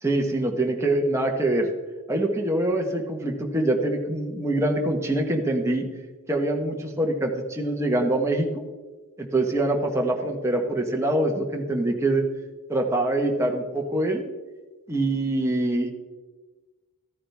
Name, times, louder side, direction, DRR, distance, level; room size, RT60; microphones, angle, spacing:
voice 1, 0.0-1.7 2.1-5.9 6.3-8.5 9.2-12.2 12.7-14.2 14.9-15.9, right 1 dB, 15° right, 1 dB, 1.3 m, -24 dB
14.5 x 9.9 x 3.6 m, 1.3 s
head